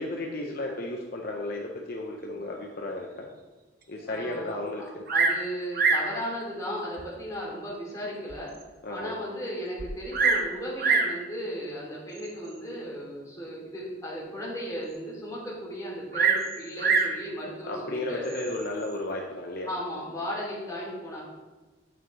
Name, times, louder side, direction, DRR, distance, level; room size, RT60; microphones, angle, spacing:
voice 1, 0.0-3.3 3.9-4.8 8.8-9.1 17.7-19.7, left 2 dB, 55° left, 0 dB, 0.8 m, -33 dB
voice 2, 4.1-8.5 8.9-18.4 19.7-21.2, equal, 20° left, -5 dB, 2.7 m, -36 dB
Bird vocalization bird call bird song, 5.1-5.5 5.7-6.1 7.0-7.1 7.7-7.8 8.3-8.4 8.6-8.7 9.8-10.5 10.8-11.2 12.2-12.5 16.1-17.2 18.2-18.7, right 5 dB, 55° right, 0.8 m, -24 dB
9.0 x 6.5 x 3.2 m, 1.2 s
head